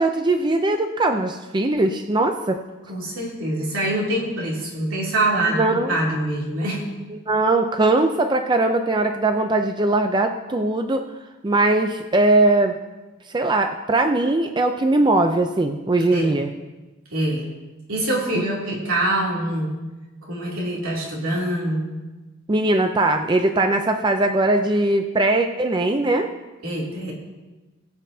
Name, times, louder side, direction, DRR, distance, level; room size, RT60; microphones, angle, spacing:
voice 1, 0.0-2.6 5.5-5.9 7.1-11.0 11.4-12.8 13.3-16.5 22.5-26.3, right 2 dB, 20° right, 6 dB, 0.4 m, -20 dB
voice 2, 2.9-6.8 16.1-16.3 17.1-17.5 17.9-19.7 20.2-21.9 26.6-27.1, right 1 dB, 80° right, -4 dB, 2.9 m, -24 dB
20.0 x 7.3 x 2.8 m, 1.2 s
head